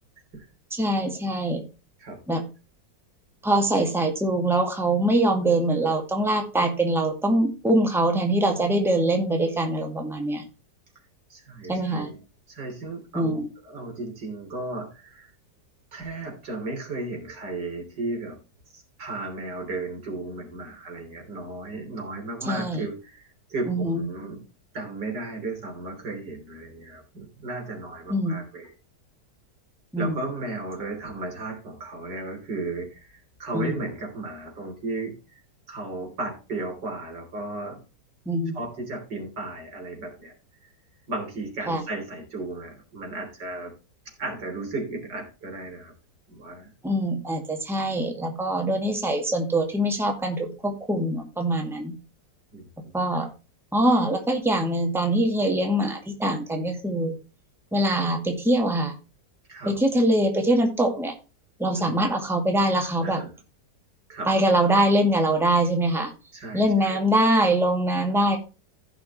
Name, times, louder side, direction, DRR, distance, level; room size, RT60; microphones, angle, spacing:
voice 1, 0.7-1.6 2.3-2.4 3.4-10.4 11.7-12.1 13.1-13.5 22.5-22.8 23.7-24.0 28.1-28.4 29.9-30.2 33.5-33.8 38.3-38.5 41.7-41.8 46.8-51.9 52.9-53.3 53.7-57.2 57.7-58.9 59.6-61.1 61.6-63.2 64.3-66.1 66.5-68.4, right 1 dB, ahead, 3 dB, 2.0 m, -23 dB
voice 2, 11.3-12.2 12.5-15.3 15.9-18.4 18.7-24.4 24.7-28.7 30.0-35.4 35.7-37.8 38.5-40.3 41.1-43.7 44.2-45.9 46.3-46.7 52.5-53.3 59.5-59.7 61.7-62.0 63.0-63.3 64.1-64.3 66.3-67.0, right 2 dB, 80° right, 2 dB, 3.9 m, -35 dB
15.5 x 6.0 x 3.1 m, 0.31 s
omnidirectional pair, 1.9 m